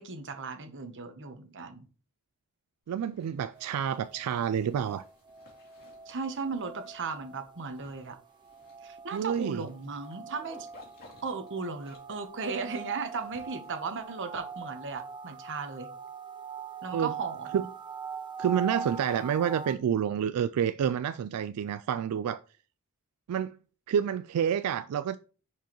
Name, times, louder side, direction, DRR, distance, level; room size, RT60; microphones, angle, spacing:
voice 1, 0.0-1.9 6.1-8.2 8.8-10.7 11.2-15.9 16.8-17.6, right 4 dB, 55° right, 1.1 m, -36 dB
Zipper (clothing), 2.9-15.3, left 2 dB, 45° left, 2.6 m, -59 dB
voice 2, 2.9-5.0 9.1-9.7 16.9-17.1 17.5-17.6 18.4-22.4 23.3-23.5 23.9-25.2, right 8 dB, 85° right, 0.3 m, -28 dB
sound 1, 3.5-19.8, right 5 dB, 20° right, 0.4 m, -43 dB
10.0 x 4.6 x 3.1 m
head